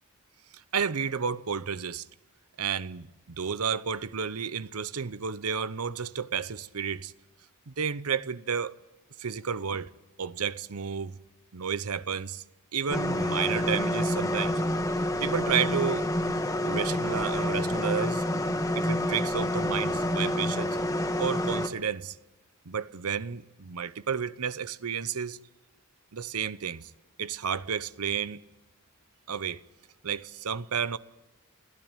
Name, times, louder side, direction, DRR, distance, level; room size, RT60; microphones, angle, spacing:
voice 1, 0.5-2.1 2.6-7.1 7.7-8.8 9.2-9.9 10.2-11.2 11.5-12.4 12.7-14.6 15.2-16.0 16.7-18.2 18.8-20.8 21.2-22.2 22.6-25.4 26.1-26.9 27.2-28.4 29.3-29.6 30.0-31.0, right 7 dB, 85° right, 0.8 m, -31 dB
sound 1, 12.9-21.7, left 1 dB, 15° left, 1.5 m, -28 dB
28.0 x 16.5 x 9.0 m
head